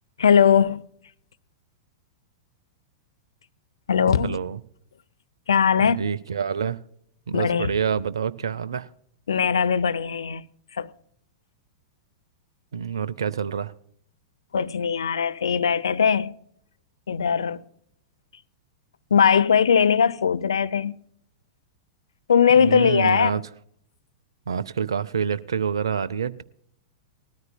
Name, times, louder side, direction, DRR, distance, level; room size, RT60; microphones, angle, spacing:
voice 1, 0.2-0.8 3.9-4.4 5.5-6.0 7.3-7.7 9.3-10.4 10.7-10.9 14.5-16.3 17.1-17.6 19.1-20.9 22.3-23.3, left 7 dB, 80° left, 0.6 m, -20 dB
voice 2, 4.2-4.6 5.8-6.8 7.3-8.9 12.7-13.7 22.6-23.4 24.5-26.4, right 7 dB, 75° right, 0.5 m, -27 dB
20.0 x 13.5 x 2.2 m
hypercardioid pair, 100°, 2 cm